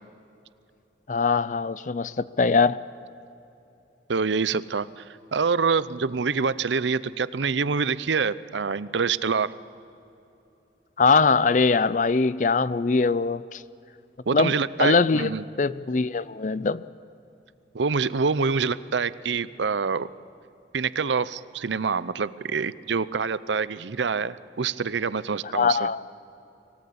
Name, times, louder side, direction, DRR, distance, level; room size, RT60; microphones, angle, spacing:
voice 1, 1.1-2.8 11.0-13.6 14.3-14.5 14.8-15.3 15.6-16.8 25.5-26.0, left 4 dB, 45° left, 0.5 m, -22 dB
voice 2, 4.1-5.1 5.3-9.5 14.3-15.5 17.7-20.1 20.7-25.9, right 5 dB, 80° right, 0.6 m, -26 dB
25.0 x 17.5 x 8.6 m
head